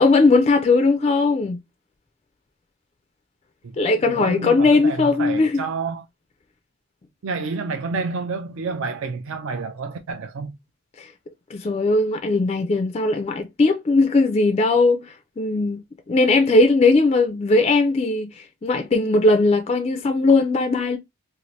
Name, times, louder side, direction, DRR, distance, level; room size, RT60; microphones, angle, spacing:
voice 1, 0.0-1.6 3.8-5.6 11.0-11.1 11.5-15.8 16.1-21.0, left 3 dB, 25° left, 0.3 m, -19 dB
voice 2, 3.6-6.0 7.2-10.6, right 4 dB, 65° right, 0.4 m, -29 dB
2.7 x 2.4 x 3.0 m
head